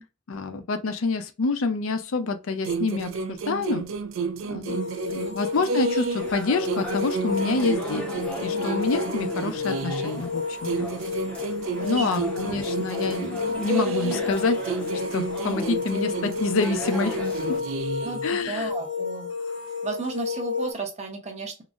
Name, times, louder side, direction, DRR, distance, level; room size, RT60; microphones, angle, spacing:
voice 1, 0.3-3.8 4.5-4.8 5.1-8.1 8.4-10.9 11.8-14.6 15.1-17.2 17.5-17.6 18.2-18.7, left 4 dB, 85° left, 0.5 m, -27 dB
sound 1, 2.6-6.3 6.6-10.3 10.6-14.3 14.6-18.3, right 4 dB, 75° right, 0.3 m, -31 dB
sound 2, 4.7-20.7, left 5 dB, 55° left, 0.8 m, -32 dB
sound 3, 6.2-17.6, equal, 5° left, 0.5 m, -37 dB
voice 2, 11.8-12.3 18.0-19.3 19.8-21.6, right 3 dB, 35° right, 0.7 m, -33 dB
3.8 x 2.0 x 2.3 m
head